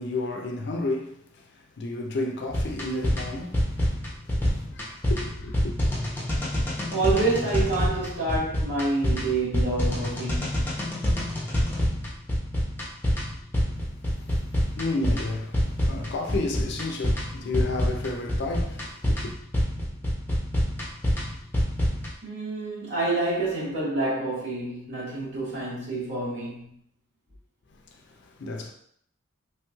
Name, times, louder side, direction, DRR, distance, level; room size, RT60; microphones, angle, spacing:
voice 1, 0.0-3.9 4.3-5.8 14.2-14.3 14.8-19.3 27.9-28.7, left 2 dB, 60° left, 0.4 m, -32 dB
sound 1, 2.5-22.1, equal, 10° left, 0.6 m, -27 dB
voice 2, 6.9-10.7 22.2-26.7, right 2 dB, 65° right, 1.5 m, -28 dB
3.2 x 3.0 x 2.3 m
head